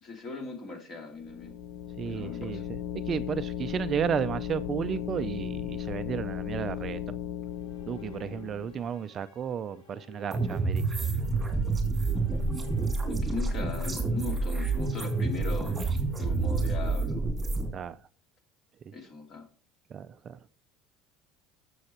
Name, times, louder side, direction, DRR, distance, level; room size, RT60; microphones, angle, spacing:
voice 1, 0.0-1.6 2.0-2.6 13.1-15.9 16.2-17.3 18.9-19.5, left 4 dB, 35° left, 2.7 m, -39 dB
sound 1, 1.2-8.9, left 10 dB, 55° left, 0.7 m, -36 dB
voice 2, 2.0-7.2 7.9-10.9 17.7-18.0 18.9-19.0 19.9-20.4, right 8 dB, 25° right, 0.4 m, -33 dB
sound 2, 7.3-17.5, left 4 dB, 75° left, 5.9 m, -53 dB
sound 3, 10.3-17.7, right 3 dB, 10° right, 2.3 m, -28 dB
13.0 x 7.1 x 4.4 m
cardioid pair, 165°, 0 cm